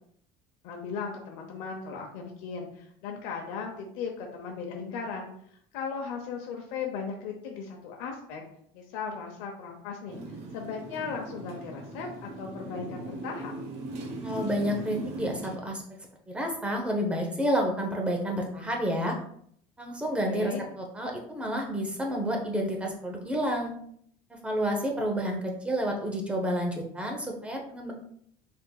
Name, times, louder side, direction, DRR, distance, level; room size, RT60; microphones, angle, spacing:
voice 1, 0.6-5.3 5.7-8.4 8.7-10.2 10.5-13.5 20.1-20.7, left 5 dB, 80° left, 1 dB, 0.8 m, -37 dB
Motorcycle, 10.1-15.6, right 2 dB, 65° right, 1.0 m, -39 dB
voice 2, 14.2-15.8 16.3-19.1 19.8-23.7 24.3-27.9, equal, 10° right, 1 dB, 0.8 m, -30 dB
5.6 x 3.6 x 2.3 m, 0.66 s
cardioid pair, 145°, 12 cm